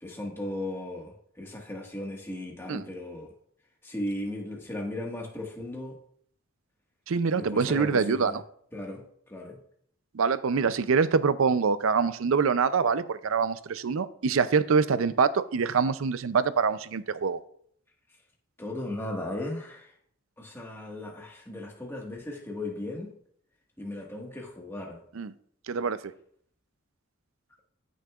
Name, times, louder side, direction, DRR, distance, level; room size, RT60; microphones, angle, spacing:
voice 1, 0.0-3.3 3.8-5.9 7.3-8.4 8.7-9.6 18.6-19.9 20.4-23.1 23.8-25.0, left 1 dB, 10° left, 1.6 m, -36 dB
voice 2, 7.1-8.4 10.1-17.4 25.2-25.3 25.7-26.0, right 5 dB, 80° right, 0.5 m, -25 dB
15.0 x 6.4 x 2.4 m
head